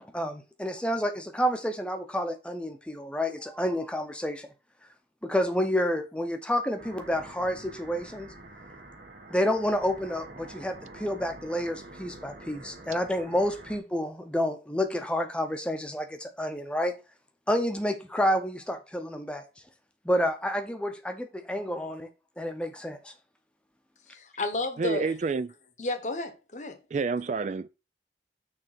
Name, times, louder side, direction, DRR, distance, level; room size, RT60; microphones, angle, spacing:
voice 1, 0.0-4.5 5.2-8.3 9.3-16.9 17.5-19.4 20.0-22.1 22.4-23.1, equal, 5° left, 0.8 m, -29 dB
sound 1, 6.8-13.8, right 2 dB, 55° right, 1.3 m, -47 dB
voice 2, 24.1-25.1 25.8-26.8, left 2 dB, 40° left, 1.0 m, -32 dB
voice 3, 24.8-25.5 26.9-27.7, right 4 dB, 40° right, 0.3 m, -28 dB
6.4 x 3.5 x 5.8 m
head